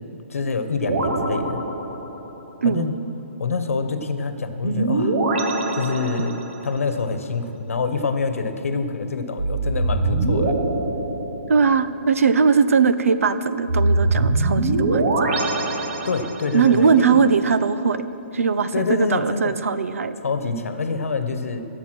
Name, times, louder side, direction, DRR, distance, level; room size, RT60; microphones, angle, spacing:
voice 1, 0.3-1.6 2.6-2.9 3.4-5.2 5.7-6.4 6.6-10.6 16.0-17.2 18.7-19.5 20.2-21.6, left 4 dB, 85° left, 8 dB, 1.1 m, -26 dB
sound 1, 0.9-2.4 4.6-6.7 9.4-11.9 13.7-16.7, right 2 dB, 55° right, 1.3 m, -23 dB
voice 2, 2.6-2.9 11.5-15.3 16.5-18.0 18.3-20.2, right 5 dB, 85° right, 12 dB, 0.7 m, -20 dB
16.5 x 6.9 x 6.2 m, 2.9 s
hypercardioid pair, 165°, 7 cm